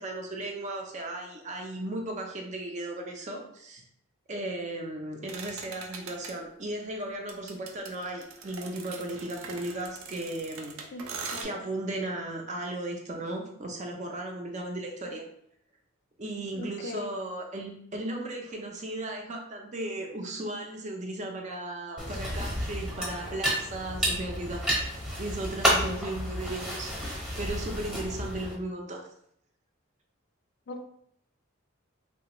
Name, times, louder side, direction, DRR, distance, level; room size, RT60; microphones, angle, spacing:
voice 1, 0.0-3.8 4.3-10.8 11.1-15.2 16.2-24.6 25.2-29.0, right 1 dB, 35° right, 2 dB, 0.5 m, -36 dB
sound 1, 5.3-6.3 7.3-11.4, right 5 dB, 90° right, 0.5 m, -41 dB
voice 2, 16.5-17.1 30.7-30.8, left 2 dB, 55° left, 6 dB, 0.3 m, -38 dB
sound 2, 22.0-28.5, equal, 5° right, 0.8 m, -31 dB
3.1 x 2.2 x 2.9 m, 0.70 s
head